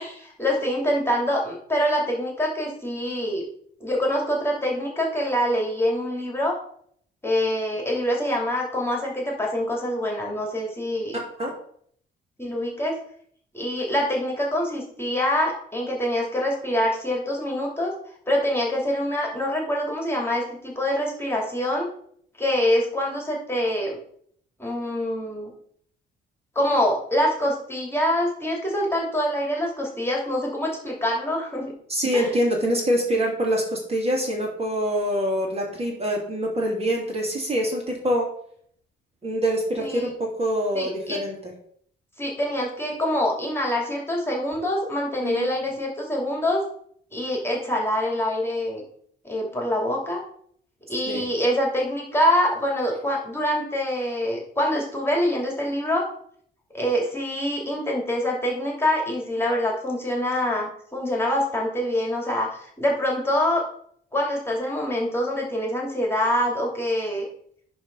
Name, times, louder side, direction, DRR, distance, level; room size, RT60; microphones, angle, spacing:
voice 1, 0.0-3.4 3.8-6.6 7.2-11.2 12.4-13.0 13.5-17.9 18.3-21.9 22.4-24.0 24.6-25.5 26.5-31.7 32.1-32.3 39.8-40.1 40.7-41.2 42.2-46.6 47.1-48.8 49.2-50.2 50.9-56.1 56.7-63.7 64.1-67.3, equal, 10° left, -1 dB, 2.8 m, -25 dB
voice 2, 31.9-38.3 39.2-41.5 45.2-45.6 51.1-51.2, equal, 30° right, -1 dB, 2.8 m, -25 dB
10.5 x 3.6 x 5.5 m, 0.62 s
cardioid pair, 90°, 20 cm